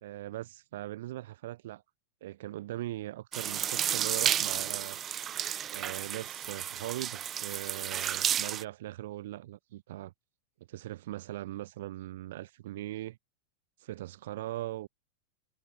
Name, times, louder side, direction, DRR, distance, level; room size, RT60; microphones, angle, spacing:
voice 1, 0.0-1.8 2.2-5.0 5.7-10.1 10.7-13.2 13.8-14.9, right 15 dB, 55° right, 0.8 m, -40 dB
sound 1, 3.3-8.6, right 10 dB, 25° right, 0.4 m, -32 dB
figure-of-eight pair, 90°, 0 cm